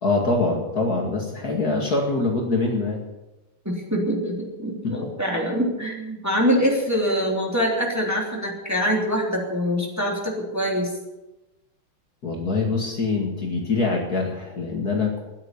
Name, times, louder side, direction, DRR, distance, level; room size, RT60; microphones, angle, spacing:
voice 1, 0.0-3.0 4.8-5.0 12.2-15.2, left 3 dB, 45° left, 0 dB, 2.5 m, -24 dB
voice 2, 3.6-10.9, equal, 5° right, -2 dB, 3.1 m, -24 dB
14.5 x 10.0 x 8.3 m, 1.0 s
omnidirectional pair, 2.3 m